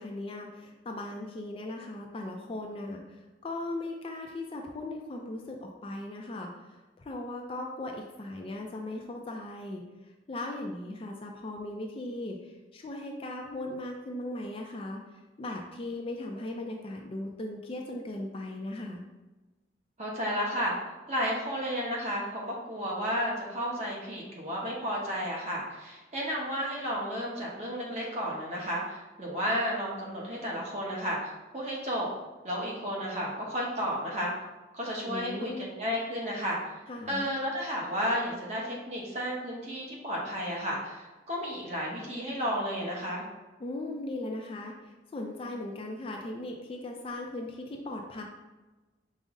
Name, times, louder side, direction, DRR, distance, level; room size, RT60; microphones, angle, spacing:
voice 1, 0.0-19.0 35.1-35.7 36.9-37.3 43.6-48.2, left 2 dB, 30° left, 2 dB, 0.3 m, -38 dB
voice 2, 20.0-20.7 21.1-32.1 32.4-34.3 34.7-36.6 37.1-43.2, equal, 35° right, -3 dB, 0.9 m, -32 dB
5.1 x 2.0 x 3.6 m, 1.2 s
head